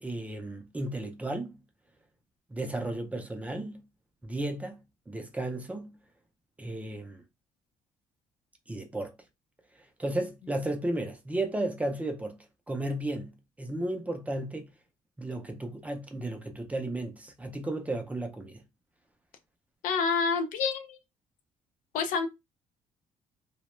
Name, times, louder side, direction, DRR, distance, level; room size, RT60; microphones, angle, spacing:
voice 1, 0.0-1.6 2.5-3.8 4.2-4.8 5.1-5.9 6.6-7.2 8.7-9.1 10.0-12.4 12.7-14.7 15.2-18.6, right 1 dB, 10° right, 0.4 m, -34 dB
voice 2, 19.8-21.0 21.9-22.3, left 5 dB, 90° left, 0.5 m, -28 dB
2.2 x 2.1 x 3.0 m
cardioid pair, 130°, 13 cm